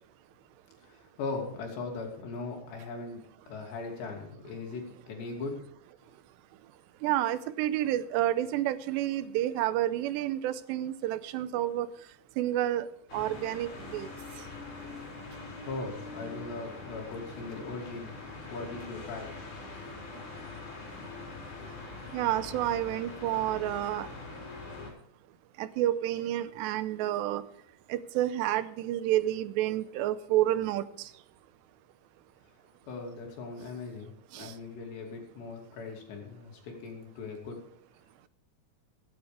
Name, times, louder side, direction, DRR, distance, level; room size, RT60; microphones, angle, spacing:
voice 1, 0.8-3.2 3.5-5.6 6.0-6.1 15.7-18.1 18.5-19.3 32.9-37.6, left 3 dB, 75° left, 1 dB, 4.9 m, -39 dB
voice 2, 7.0-11.9 12.4-12.9 13.1-14.1 22.1-24.1 25.6-27.4 27.9-30.8, right 13 dB, 85° right, 13 dB, 2.8 m, -29 dB
sound 1, 13.1-24.9, left 3 dB, 45° left, 5.6 m, -43 dB
24.0 x 9.7 x 3.4 m, 0.68 s
omnidirectional pair, 5.0 m